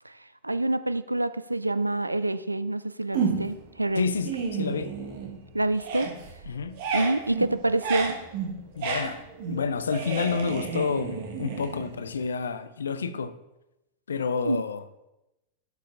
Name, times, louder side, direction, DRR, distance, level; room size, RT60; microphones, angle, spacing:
voice 1, 0.4-4.0 5.5-6.1 6.9-8.2 14.4-14.6, right 2 dB, 85° right, 0.3 m, -27 dB
sound 1, 3.1-3.7 4.1-5.4 5.7-12.2, right 5 dB, 50° right, 1.3 m, -32 dB
voice 2, 4.0-4.9 6.5-6.8 8.8-13.3 14.1-14.8, left 5 dB, 70° left, 0.4 m, -29 dB
11.5 x 5.6 x 2.5 m
figure-of-eight pair, 90°, 0 cm